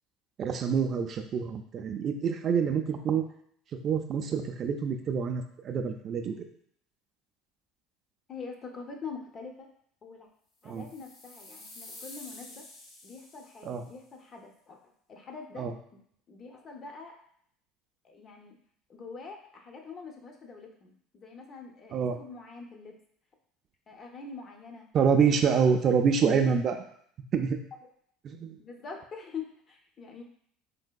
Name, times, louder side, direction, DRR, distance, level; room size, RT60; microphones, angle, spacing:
voice 1, 0.4-3.2 3.8-6.5 10.7-10.9 13.6-13.8 15.6-15.7 21.9-22.2 24.9-26.8 27.3-27.6 28.2-28.6, right 6 dB, 40° right, 5 dB, 0.3 m, -26 dB
voice 2, 8.3-9.7 10.0-10.3 10.6-12.6 13.0-14.8 15.1-15.7 15.9-16.0 16.3-17.1 18.0-18.6 18.9-22.9 23.9-24.9 25.5-26.5 28.6-30.2, left 5 dB, 35° left, 2 dB, 0.5 m, -44 dB
sound 1, 10.7-13.9, left 2 dB, 55° left, 0.9 m, -49 dB
3.3 x 2.6 x 2.2 m, 0.64 s
supercardioid pair, 120°, 0 cm